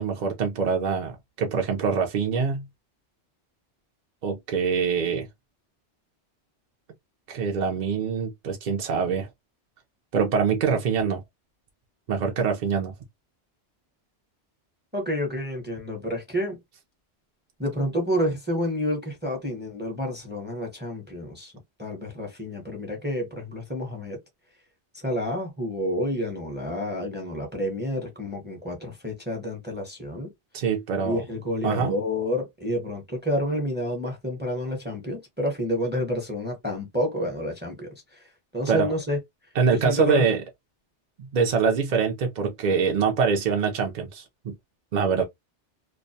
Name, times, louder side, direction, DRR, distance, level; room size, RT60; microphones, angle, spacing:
voice 1, 0.0-2.7 4.2-5.3 7.3-9.3 10.1-11.2 12.1-12.9 30.5-31.2 31.6-32.0 38.7-38.9 39.6-40.4 41.2-44.5 44.9-45.2, right 6 dB, 55° right, 0.5 m, -24 dB
voice 2, 14.9-16.6 17.6-21.5 21.8-24.2 24.9-30.3 31.0-39.2 39.7-40.3, equal, 10° right, 0.6 m, -29 dB
2.3 x 2.1 x 2.6 m
omnidirectional pair, 1.2 m